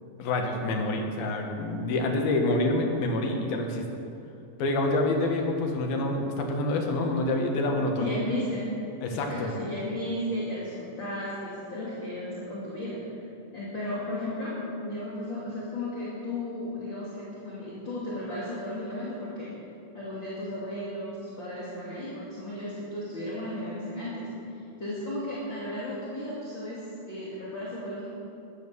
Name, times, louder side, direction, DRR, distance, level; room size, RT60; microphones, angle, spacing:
voice 1, 0.2-3.8 4.6-8.2 9.0-9.5, left 2 dB, 90° left, 2 dB, 3.4 m, -27 dB
voice 2, 8.0-8.7 9.1-13.0 13.5-19.5 19.9-24.3 24.8-28.1, left 1 dB, 35° left, -8 dB, 3.0 m, -34 dB
13.5 x 11.5 x 7.0 m, 2.7 s
omnidirectional pair, 4.1 m